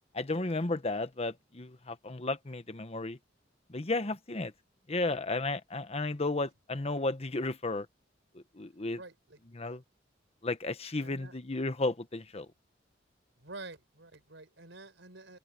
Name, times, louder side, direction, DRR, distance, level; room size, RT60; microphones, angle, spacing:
voice 1, 0.1-3.2 3.7-4.5 4.9-7.9 8.3-9.0 9.5-9.8 10.4-12.5, left 2 dB, 35° left, 1.0 m, -33 dB
voice 2, 9.0-9.4 11.0-11.4 13.4-15.4, right 2 dB, 80° right, 4.5 m, -48 dB
open air
head